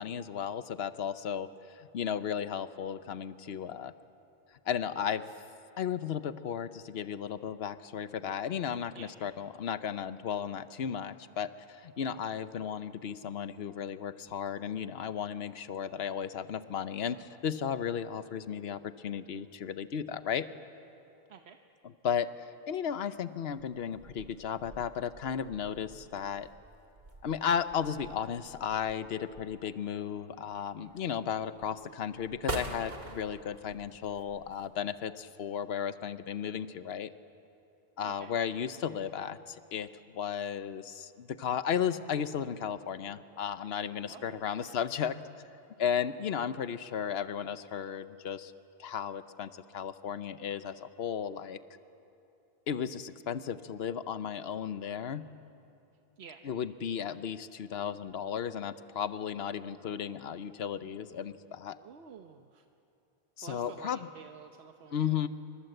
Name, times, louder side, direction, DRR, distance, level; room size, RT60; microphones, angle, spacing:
voice 1, 0.0-3.9 4.6-5.3 5.8-20.5 22.0-26.5 27.2-37.1 38.0-39.9 40.1-45.2 45.8-48.5 48.8-51.6 52.7-55.3 56.4-61.8 63.4-64.0 64.9-65.3, left 8 dB, 80° left, 12 dB, 1.1 m, -34 dB
sound 1, 23.5-34.7, right 2 dB, 70° right, 2.5 m, -45 dB
voice 2, 44.1-44.8 56.2-56.4 61.8-62.6 63.4-65.3, right 6 dB, 90° right, 6 dB, 1.2 m, -50 dB
29.0 x 25.5 x 7.9 m, 2.8 s
omnidirectional pair, 1.0 m